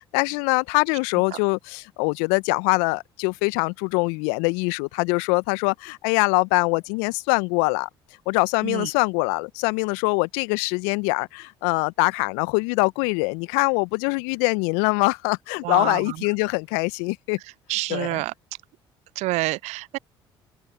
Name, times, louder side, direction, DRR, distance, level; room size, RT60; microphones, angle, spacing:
voice 1, 0.1-7.9 8.3-17.4 17.9-18.2, left 31 dB, 70° left, 1.2 m, -23 dB
voice 2, 15.6-16.2 17.7-18.3 19.2-20.0, right 20 dB, 60° right, 0.5 m, -27 dB
figure-of-eight pair, 55°, 13 cm